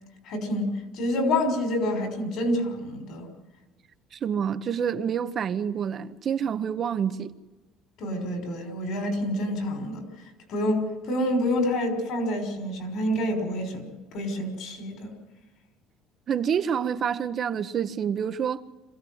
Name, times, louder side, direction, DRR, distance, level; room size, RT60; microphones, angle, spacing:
voice 1, 0.2-3.3 8.0-10.0 10.5-15.1, left 1 dB, 65° left, 6.1 m, -28 dB
voice 2, 4.1-7.3 16.3-18.6, right 8 dB, 40° right, 1.0 m, -27 dB
26.0 x 15.5 x 8.0 m
cardioid pair, 120°, 0 cm